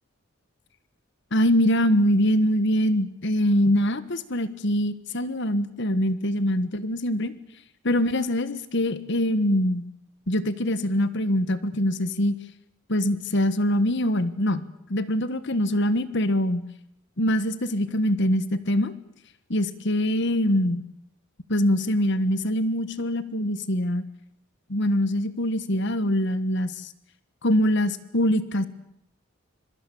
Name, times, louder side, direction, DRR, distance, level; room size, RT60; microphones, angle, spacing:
voice 1, 1.3-7.3 7.8-9.8 10.3-12.4 12.9-16.6 17.2-18.9 19.5-20.8 21.5-24.0 24.7-26.9 27.4-28.7, equal, 60° left, 13 dB, 1.5 m, -23 dB
26.0 x 23.5 x 8.5 m, 0.74 s
head